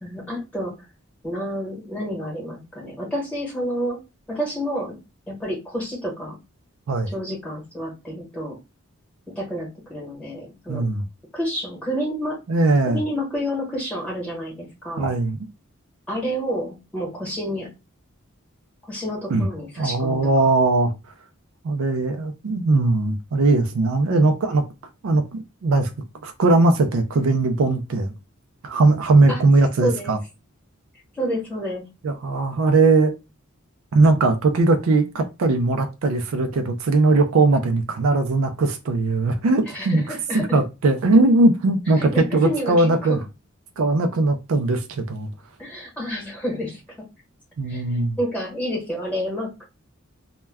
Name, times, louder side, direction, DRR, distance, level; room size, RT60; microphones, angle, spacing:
voice 1, 0.0-0.8 1.2-4.0 4.3-5.0 5.3-6.4 7.1-8.6 9.4-10.9 11.3-12.4 12.9-15.1 16.1-17.7 18.9-20.2 24.1-24.3 29.3-29.4 29.8-30.2 31.1-31.9 39.7-40.6 42.0-43.2 45.6-47.0 47.7-47.8 48.2-49.6, equal, 5° left, 1.0 m, -29 dB
voice 2, 10.7-11.0 12.5-13.0 15.0-15.5 19.3-19.5 19.8-20.9 21.6-24.7 25.0-25.9 26.2-28.1 28.6-30.2 32.0-33.1 33.9-43.2 43.8-45.3 47.6-48.2, right 2 dB, 75° right, 0.4 m, -19 dB
2.2 x 2.1 x 3.3 m
head